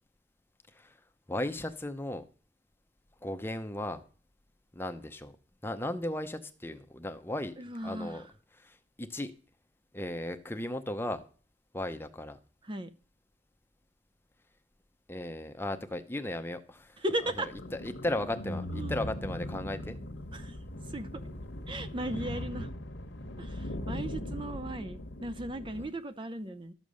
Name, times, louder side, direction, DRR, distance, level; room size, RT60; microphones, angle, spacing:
voice 1, 1.3-2.2 3.2-4.0 4.7-5.4 5.6-7.5 7.8-8.2 8.6-9.3 9.9-11.2 11.7-12.4 15.1-17.0 17.4-17.5 17.8-20.0 25.8-25.9, left 1 dB, 10° left, 0.7 m, -36 dB
voice 2, 7.6-8.3 12.6-12.9 17.0-17.5 18.6-18.9 20.3-21.2 21.7-22.7 23.4-26.7, right 1 dB, 25° right, 0.6 m, -37 dB
sound 1, 17.2-25.9, left 1 dB, 80° left, 1.2 m, -39 dB
12.5 x 7.1 x 6.4 m
head